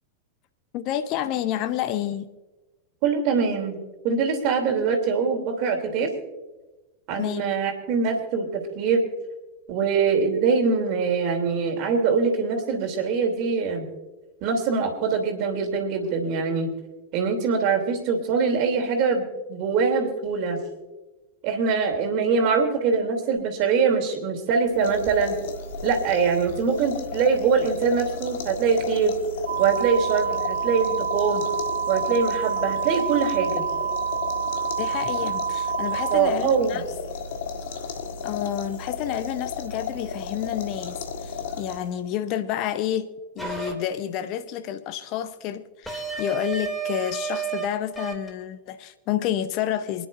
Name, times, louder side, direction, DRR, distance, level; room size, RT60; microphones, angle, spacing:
voice 1, 0.7-2.3 7.2-7.5 34.8-36.8 38.2-50.1, left 11 dB, 40° left, 0.7 m, -29 dB
voice 2, 3.0-3.8 4.0-6.1 7.1-8.5 8.7-9.1 9.7-13.9 14.4-16.7 17.1-20.6 21.4-25.4 25.8-29.2 29.6-31.4 31.9-33.7 36.1-36.8, right 5 dB, 40° right, 2.8 m, -23 dB
sound 1, 24.7-42.1, left 5 dB, 55° left, 1.6 m, -34 dB
sound 2, 29.5-36.2, right 7 dB, 60° right, 1.8 m, -28 dB
sound 3, 43.4-43.7 45.9-47.6 48.0-48.3, right 5 dB, 5° left, 2.5 m, -30 dB
28.0 x 10.5 x 2.5 m
figure-of-eight pair, 90°, 0 cm